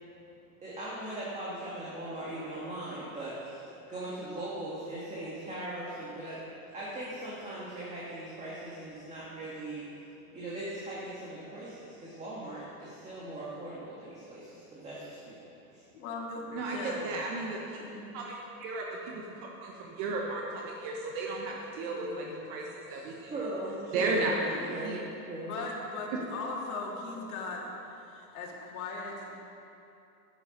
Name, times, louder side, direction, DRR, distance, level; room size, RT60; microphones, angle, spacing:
voice 1, 0.6-6.4 6.7-9.8 10.3-15.4 15.7-15.8 22.9-24.3 24.7-25.0 25.3-25.5, right 1 dB, 15° right, -7 dB, 1.8 m, -39 dB
voice 2, 15.9-17.2 17.8-18.1 21.9-22.4 24.1-24.7 25.4-27.7 28.0-29.4, left 3 dB, 70° left, -2 dB, 2.5 m, -39 dB
voice 3, 16.5-17.8 18.1-23.3 23.9-25.0, right 3 dB, 45° right, -1 dB, 1.2 m, -34 dB
10.5 x 8.9 x 5.3 m, 2.8 s
supercardioid pair, 135°, 45 cm